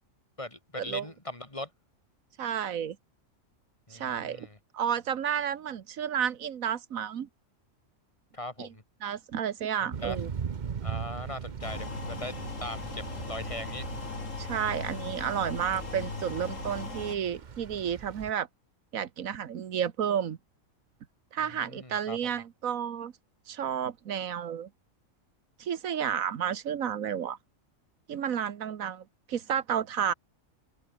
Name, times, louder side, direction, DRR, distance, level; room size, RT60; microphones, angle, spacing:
voice 1, 0.4-1.7 3.9-4.6 8.3-8.8 9.8-10.2 10.8-13.8 21.4-22.3, left 1 dB, 25° left, 2.8 m, -40 dB
voice 2, 2.4-3.0 3.9-4.5 4.7-7.3 8.6-8.7 9.0-10.3 14.4-18.5 18.9-20.4 21.3-23.1 23.5-24.7 25.6-27.4 28.1-30.1, right 8 dB, 80° right, 1.5 m, -31 dB
Thunder / Rain, 9.9-18.3, right 6 dB, 40° right, 0.9 m, -40 dB
sound 1, 11.6-17.2, left 3 dB, 65° left, 3.4 m, -38 dB
omnidirectional pair, 1.4 m